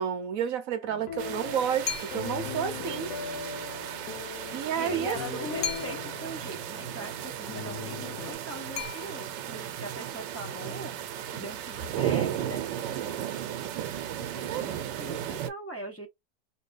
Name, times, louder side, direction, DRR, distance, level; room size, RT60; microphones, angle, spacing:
voice 1, 0.0-3.1 4.5-5.2 14.5-14.6, right 8 dB, 65° right, 0.9 m, -30 dB
voice 2, 0.7-1.1 2.7-2.8 4.8-13.2 14.2-14.7 15.0-16.1, right 1 dB, 20° left, 0.4 m, -41 dB
sound 1, 0.9-8.3, left 7 dB, 75° left, 1.3 m, -40 dB
sound 2, 1.2-15.5, right 10 dB, 85° right, 1.3 m, -35 dB
sound 3, 1.8-2.5 5.6-6.3 8.7-9.5, left 7 dB, 55° left, 0.9 m, -36 dB
2.9 x 2.7 x 3.2 m
omnidirectional pair, 1.9 m